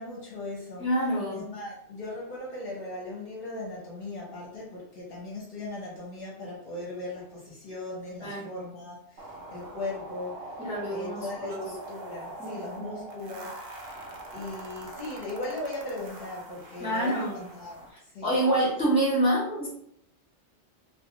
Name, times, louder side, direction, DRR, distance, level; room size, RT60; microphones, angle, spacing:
voice 1, 0.0-0.8 1.3-10.5 10.9-13.9 14.3-18.4, left 2 dB, 50° left, -5 dB, 1.0 m, -38 dB
voice 2, 0.8-1.4 8.2-8.5 10.6-11.6 12.4-13.0 16.8-17.4 18.2-19.7, right 1 dB, 5° right, -8 dB, 0.7 m, -27 dB
sound 1, 9.2-17.9, right 2 dB, 60° right, 0.8 m, -43 dB
2.6 x 2.4 x 2.8 m, 0.71 s
omnidirectional pair, 1.2 m